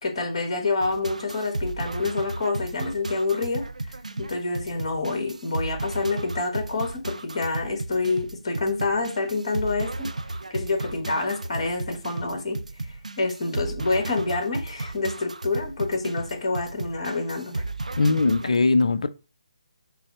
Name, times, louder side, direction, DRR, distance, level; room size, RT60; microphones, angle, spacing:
voice 1, 0.0-3.6 4.2-10.1 10.5-12.6 13.2-17.6, left 3 dB, 50° left, 1.3 m, -27 dB
sound 1, 0.8-18.6, right 2 dB, 85° right, 0.3 m, -34 dB
voice 2, 17.9-19.1, left 3 dB, 65° left, 0.4 m, -20 dB
5.5 x 2.0 x 4.1 m
figure-of-eight pair, 145°, 4 cm